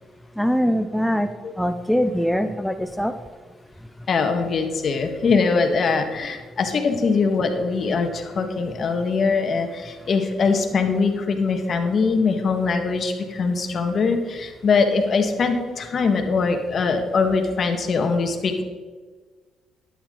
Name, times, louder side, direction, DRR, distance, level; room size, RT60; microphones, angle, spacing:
voice 1, 0.4-1.3 1.6-3.1, equal, ahead, 7 dB, 0.6 m, -22 dB
voice 2, 4.1-18.6, left 4 dB, 50° left, 5 dB, 1.7 m, -22 dB
12.5 x 10.5 x 3.9 m, 1.4 s
cardioid pair, 95°, 0 cm